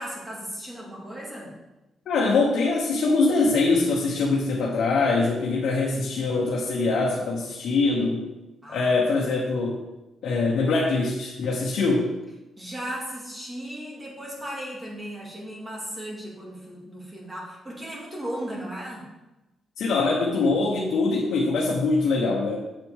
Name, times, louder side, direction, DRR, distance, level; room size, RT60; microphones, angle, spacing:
voice 1, 0.0-1.5 8.6-9.3 12.6-19.1, equal, 15° right, -3 dB, 2.4 m, -36 dB
voice 2, 2.1-8.3 8.7-9.8 10.2-12.1 19.8-22.6, left 3 dB, 80° left, -2 dB, 1.2 m, -23 dB
7.7 x 7.5 x 3.7 m, 1.0 s
cardioid pair, 150°, 0 cm